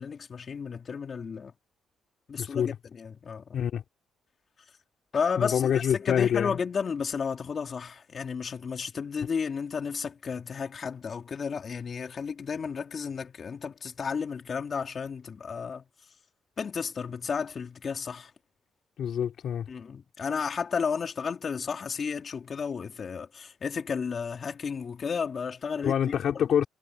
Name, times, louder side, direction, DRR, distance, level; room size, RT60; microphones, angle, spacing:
voice 1, 0.0-1.5 2.3-3.6 5.1-15.8 16.6-18.3 19.7-26.5, left 6 dB, 45° left, 3.6 m, -33 dB
voice 2, 2.4-2.8 3.5-3.8 5.4-6.6 19.0-19.7 25.8-26.7, left 9 dB, 65° left, 3.6 m, -26 dB
cardioid pair, 90°, 0 cm